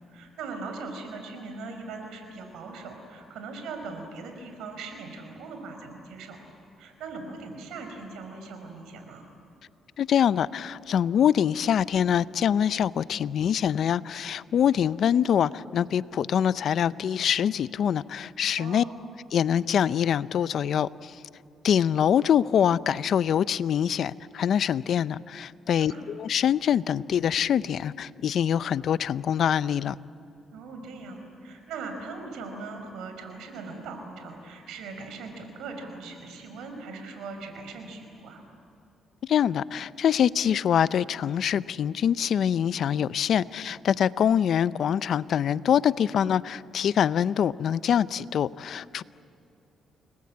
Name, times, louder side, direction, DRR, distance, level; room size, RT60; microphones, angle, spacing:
voice 1, 0.1-6.4 6.8-9.2 18.6-19.0 25.7-26.0 30.5-38.4, right 3 dB, 85° right, 5 dB, 5.0 m, -40 dB
voice 2, 10.0-18.8 19.3-21.2 21.6-30.0 39.2-49.0, left 9 dB, 65° left, 17 dB, 0.6 m, -24 dB
29.5 x 20.5 x 8.7 m, 2.7 s
cardioid pair, 90°, 0 cm